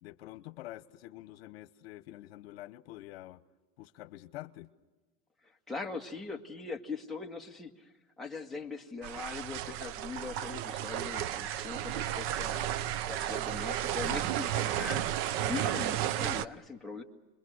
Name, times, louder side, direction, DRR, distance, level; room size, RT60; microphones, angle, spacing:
voice 1, 0.0-3.4 3.8-4.7, left 15 dB, 75° left, 1.0 m, -47 dB
voice 2, 5.4-17.0, left 4 dB, ahead, 1.8 m, -41 dB
sound 1, 9.0-16.5, right 12 dB, 45° right, 0.7 m, -33 dB
sound 2, 10.9-16.4, right 12 dB, 80° right, 1.0 m, -42 dB
29.0 x 22.0 x 6.5 m
supercardioid pair, 140°, 30 cm